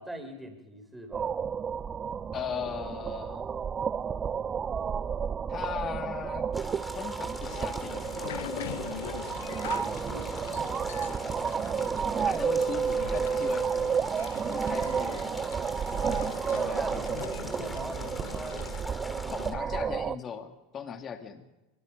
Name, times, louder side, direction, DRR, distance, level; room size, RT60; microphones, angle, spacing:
voice 1, 0.0-1.3 9.6-10.3 14.6-15.0 16.5-19.5, right 1 dB, 5° right, 4 dB, 6.0 m, -42 dB
sound 1, 1.1-20.2, right 7 dB, 30° right, 0.7 m, -31 dB
voice 2, 2.3-3.5 5.5-6.5 6.9-8.6 12.2-14.1 14.5-15.5 16.7-17.2 19.4-21.5, left 7 dB, 35° left, 5 dB, 2.5 m, -38 dB
sound 2, 6.5-19.5, left 2 dB, 10° left, 3.1 m, -42 dB
sound 3, 7.4-18.8, left 14 dB, 70° left, 0.7 m, -43 dB
25.5 x 24.5 x 5.3 m, 1.1 s
figure-of-eight pair, 80°, 0 cm